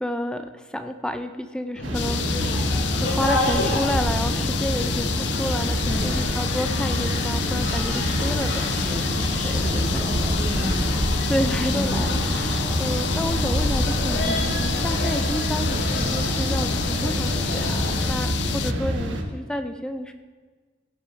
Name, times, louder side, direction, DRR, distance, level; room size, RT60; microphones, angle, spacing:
voice 1, 0.0-8.7 9.4-10.1 11.3-20.1, equal, 5° left, 8 dB, 0.3 m, -30 dB
sound 1, 1.7-18.1, left 1 dB, 85° left, 2.3 m, -31 dB
sound 2, 1.8-19.2, equal, 85° right, 1.3 m, -26 dB
sound 3, 1.9-18.7, left 8 dB, 70° left, 0.4 m, -30 dB
voice 2, 5.8-6.3 8.7-11.1 11.7-12.0, equal, 15° right, -12 dB, 3.2 m, -33 dB
15.5 x 6.6 x 4.6 m, 1.4 s
head